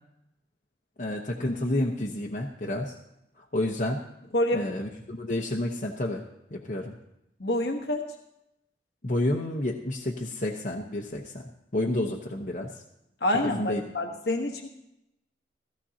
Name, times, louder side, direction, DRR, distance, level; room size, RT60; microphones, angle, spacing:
voice 1, 1.0-2.9 3.4-4.0 4.5-6.2 6.5-6.9 9.0-11.4 11.7-12.7 13.4-13.8, left 1 dB, 45° left, -1 dB, 1.0 m, -30 dB
voice 2, 4.3-4.6 7.4-8.0 13.2-14.7, left 1 dB, 65° left, 2 dB, 1.3 m, -27 dB
17.0 x 14.0 x 2.9 m, 0.85 s
head